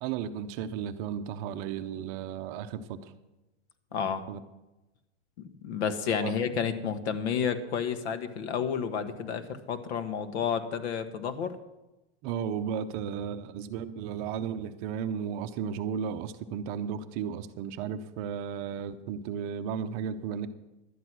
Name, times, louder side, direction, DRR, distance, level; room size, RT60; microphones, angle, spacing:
voice 1, 0.0-3.1 4.3-4.4 6.2-6.3 12.2-20.5, right 8 dB, 35° right, 10 dB, 0.7 m, -34 dB
voice 2, 3.9-4.2 5.4-11.5, left 7 dB, 75° left, 10 dB, 1.5 m, -31 dB
12.0 x 9.7 x 6.1 m, 1.0 s
supercardioid pair, 155°, 33 cm